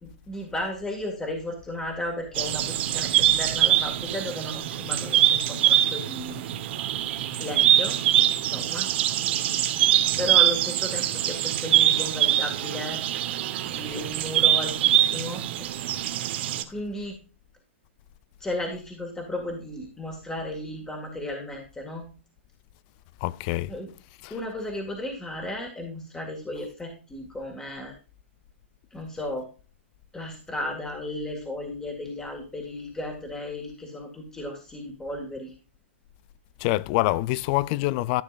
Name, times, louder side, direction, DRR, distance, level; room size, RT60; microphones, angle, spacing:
voice 1, 0.0-6.4 7.3-8.0 8.5-8.9 10.2-13.0 13.6-15.7 16.7-17.2 18.4-22.1 23.7-23.9 24.3-27.9 28.9-29.5 30.1-35.5, left 1 dB, 10° left, 1.9 m, -34 dB
sound 1, 2.4-16.6, right 12 dB, 55° right, 1.1 m, -23 dB
voice 2, 23.2-23.7 24.2-24.3 36.6-38.2, left 18 dB, 40° left, 0.4 m, -25 dB
13.0 x 6.7 x 2.5 m
hypercardioid pair, 135°, 7 cm